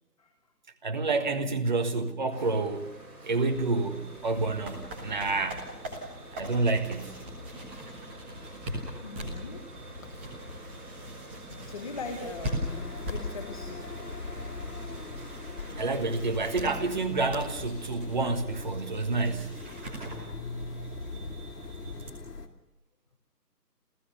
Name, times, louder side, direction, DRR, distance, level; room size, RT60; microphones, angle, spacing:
voice 1, 0.8-2.9 3.2-5.6 6.3-7.1 15.8-19.5 20.0-20.1, right 3 dB, 30° right, 8 dB, 1.5 m, -29 dB
sound 1, 2.3-17.9, right 1 dB, 55° right, 5.8 m, -48 dB
sound 2, 3.3-22.1, equal, 5° right, 1.3 m, -41 dB
voice 2, 9.0-10.4 11.2-13.9, left 3 dB, 20° left, 4 dB, 1.3 m, -42 dB
sound 3, 12.6-22.5, left 3 dB, 70° left, 2.7 m, -41 dB
29.0 x 15.0 x 6.8 m, 0.98 s
figure-of-eight pair, 160°, 49 cm